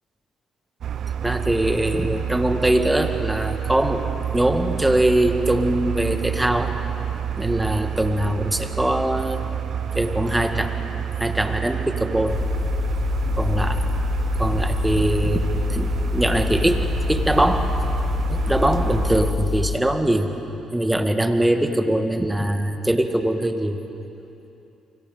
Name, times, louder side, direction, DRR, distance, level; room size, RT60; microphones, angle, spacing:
sound 1, 0.8-19.3, right 8 dB, 60° right, 0.5 m, -28 dB
voice 1, 1.2-4.0 4.3-6.7 7.4-9.4 9.9-10.7 11.2-12.4 13.4-13.8 14.4-17.7 18.3-20.3 20.7-23.8, right 1 dB, 10° right, 6 dB, 1.9 m, -22 dB
sound 2, 12.3-19.8, left 5 dB, 45° left, 1.1 m, -25 dB
29.0 x 24.5 x 3.9 m, 2.8 s
hypercardioid pair, 55°, 0 cm